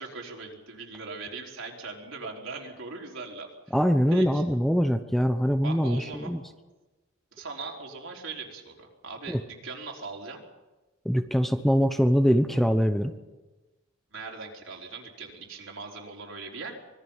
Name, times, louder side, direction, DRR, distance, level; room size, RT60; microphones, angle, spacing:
voice 1, 0.0-3.5 4.1-4.4 5.6-6.3 7.3-10.4 14.1-16.7, right 3 dB, 70° right, -1 dB, 4.3 m, -40 dB
voice 2, 3.7-6.4 9.3-9.4 11.0-13.1, equal, ahead, 7 dB, 0.8 m, -23 dB
25.0 x 21.5 x 5.7 m, 1.1 s
head